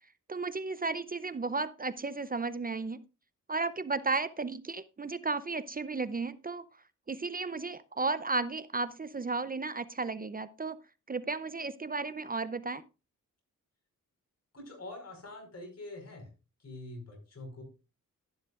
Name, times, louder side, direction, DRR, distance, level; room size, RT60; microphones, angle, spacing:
voice 1, 0.3-3.0 3.5-6.6 7.1-10.8 11.1-12.8, right 3 dB, 25° right, 13 dB, 0.6 m, -34 dB
voice 2, 14.5-16.3 16.6-17.6, left 2 dB, 50° left, 2 dB, 5.0 m, -45 dB
12.0 x 11.0 x 2.5 m, 0.30 s
cardioid pair, 85°, 32 cm